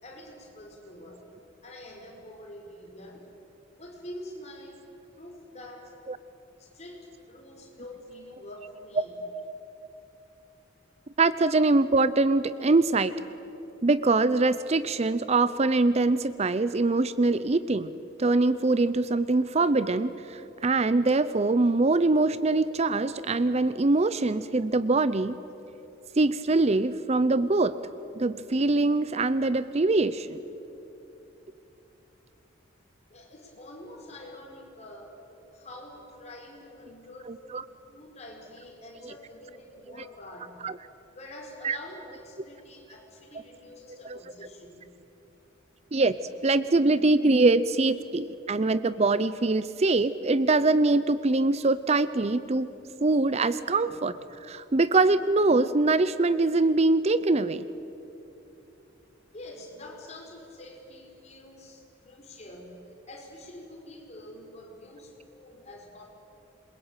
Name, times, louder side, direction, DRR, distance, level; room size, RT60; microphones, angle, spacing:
voice 1, 0.0-1.3 1.6-3.3 3.8-4.8 5.2-5.9 6.6-9.3 33.1-35.2 35.5-40.6 41.1-44.9 59.3-62.8 63.1-66.0, left 1 dB, 35° left, 1 dB, 5.1 m, -46 dB
voice 2, 11.2-13.1 13.8-17.9 18.2-25.3 26.2-27.8 28.2-30.4 37.5-37.6 40.6-40.7 41.6-41.8 44.0-44.2 45.9-46.1 46.4-52.7 53.0-54.1 54.4-57.6, right 3 dB, 35° right, 15 dB, 0.5 m, -23 dB
27.0 x 22.0 x 9.0 m, 3.0 s
head